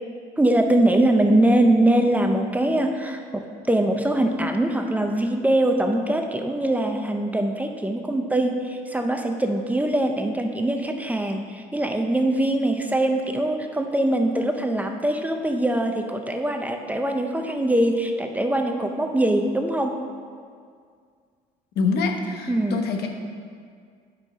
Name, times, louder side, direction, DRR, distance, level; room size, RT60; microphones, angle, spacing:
voice 1, 0.4-20.0 22.5-22.8, right 1 dB, 10° right, 4 dB, 0.6 m, -22 dB
voice 2, 21.8-23.1, left 4 dB, 75° left, 3 dB, 1.0 m, -25 dB
8.8 x 5.6 x 5.5 m, 2.1 s
cardioid pair, 110°, 17 cm